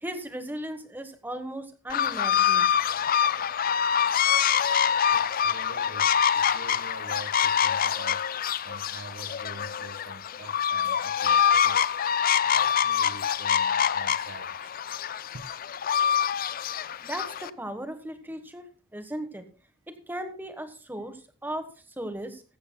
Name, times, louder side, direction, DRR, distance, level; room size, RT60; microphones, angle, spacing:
voice 1, 0.0-2.7 17.0-18.7 18.9-19.4 19.9-21.7 22.0-22.4, right 1 dB, 10° right, 1.3 m, -36 dB
sound 1, 1.9-17.5, left 8 dB, 45° left, 0.4 m, -25 dB
voice 2, 5.0-11.9 12.3-14.7 15.3-15.5, right 3 dB, 65° right, 1.4 m, -45 dB
15.0 x 14.5 x 2.3 m
head